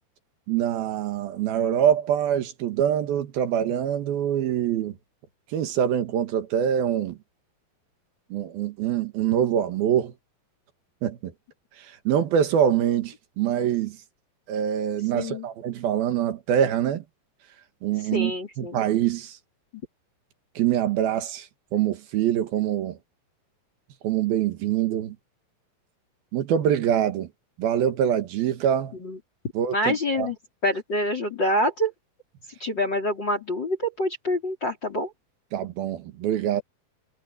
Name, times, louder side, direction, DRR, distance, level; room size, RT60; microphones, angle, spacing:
voice 1, 0.5-5.0 5.5-7.2 8.3-10.1 11.0-11.3 12.1-14.0 14.5-17.0 17.8-19.4 20.6-21.5 21.7-23.0 24.0-25.2 26.3-27.3 27.6-28.9 29.6-30.3 35.5-36.6, right 9 dB, 75° right, 3.4 m, -24 dB
voice 2, 15.1-15.5 18.1-18.8 29.0-29.2 29.7-30.4 30.6-31.9 32.6-35.1, left 1 dB, 30° left, 4.3 m, -26 dB
omnidirectional pair, 4.3 m